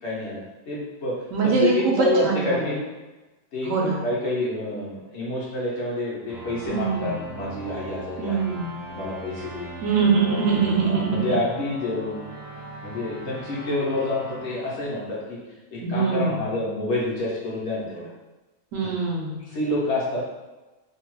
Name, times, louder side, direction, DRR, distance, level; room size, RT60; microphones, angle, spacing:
voice 1, 0.0-2.8 3.5-8.5 8.9-9.7 10.2-10.5 10.8-12.3 12.8-15.4 15.7-18.1 19.5-20.2, left 2 dB, 60° left, -6 dB, 0.9 m, -28 dB
voice 2, 1.3-2.7 3.6-4.0 6.7-7.2 8.2-8.7 9.8-11.2 15.8-16.4 18.7-19.5, right 4 dB, 70° right, -2 dB, 0.9 m, -23 dB
sound 1, 6.3-15.6, right 2 dB, 35° right, 0.5 m, -39 dB
2.6 x 2.2 x 2.9 m, 1.1 s
omnidirectional pair, 1.5 m